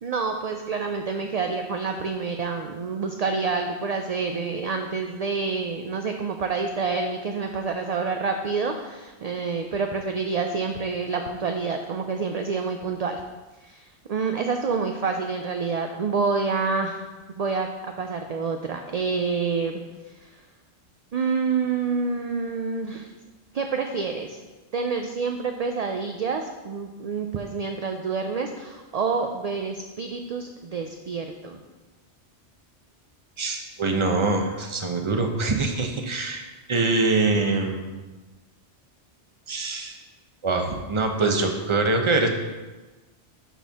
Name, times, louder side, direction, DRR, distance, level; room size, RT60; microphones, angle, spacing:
voice 1, 0.0-13.2 13.6-17.1 17.4-17.7 18.0-19.8 20.1-20.4 21.1-23.1 23.5-24.4 24.7-31.6, right 4 dB, 55° right, 4 dB, 0.4 m, -28 dB
voice 2, 33.4-36.4 36.7-37.9 39.5-40.0 40.4-42.3, right 3 dB, 30° right, 4 dB, 0.7 m, -24 dB
11.5 x 4.3 x 3.5 m, 1.2 s
omnidirectional pair, 1.1 m